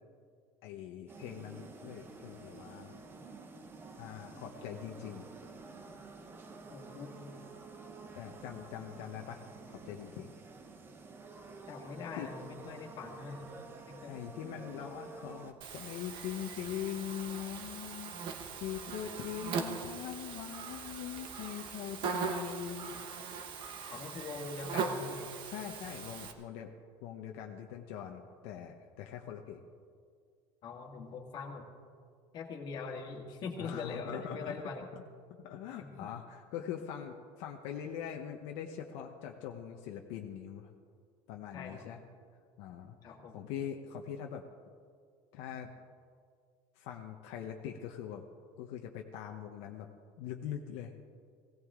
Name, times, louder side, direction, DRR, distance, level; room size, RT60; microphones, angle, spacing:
voice 1, 0.6-3.0 4.0-5.3 8.1-9.4 9.7-10.3 12.2-12.3 14.1-18.2 18.6-23.1 25.4-26.7 27.0-29.6 33.6-34.5 35.4-40.7 41.3-42.0 42.6-43.0 43.3-44.4 45.3-45.7 46.8-48.2 48.6-49.9 50.2-50.9, left 9 dB, 70° left, 2 dB, 1.0 m, -42 dB
sound 1, 1.1-15.5, right 3 dB, 20° right, 1.0 m, -50 dB
voice 2, 6.7-7.3 11.7-13.5 13.9-14.2 23.9-25.3 30.6-31.7 32.3-34.9 35.8-36.1 41.5-41.9 43.0-43.4, left 4 dB, 40° left, 2 dB, 2.0 m, -42 dB
Buzz, 15.6-26.3, right 6 dB, 45° right, 1.2 m, -40 dB
17.5 x 17.0 x 3.7 m, 2.1 s
cardioid pair, 170°, 11 cm